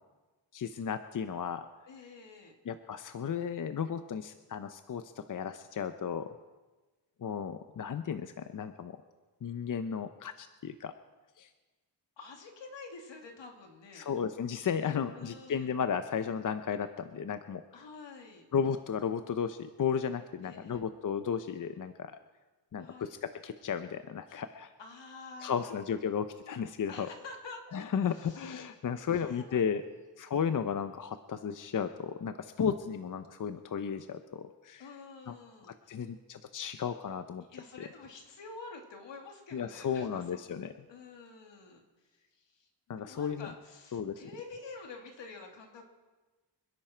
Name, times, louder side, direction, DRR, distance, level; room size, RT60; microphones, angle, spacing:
voice 1, 0.5-1.7 2.7-6.3 7.2-9.0 9.4-10.9 11.4-11.5 14.0-17.6 18.5-22.1 22.7-23.1 23.4-24.7 25.4-27.1 27.7-29.8 30.2-34.8 35.3-35.4 35.9-37.4 39.5-40.9 42.9-43.5 43.9-44.2, left 7 dB, 45° left, 9 dB, 0.7 m, -34 dB
voice 2, 1.9-2.5 12.2-14.1 15.1-15.7 17.7-18.5 20.4-20.8 22.8-23.2 24.8-25.7 26.9-27.6 28.0-28.7 29.0-30.1 34.8-36.0 37.5-40.5 40.9-45.8, left 3 dB, 80° left, 2 dB, 2.7 m, -49 dB
26.5 x 11.0 x 4.5 m, 1.2 s
wide cardioid pair, 120°, 43 cm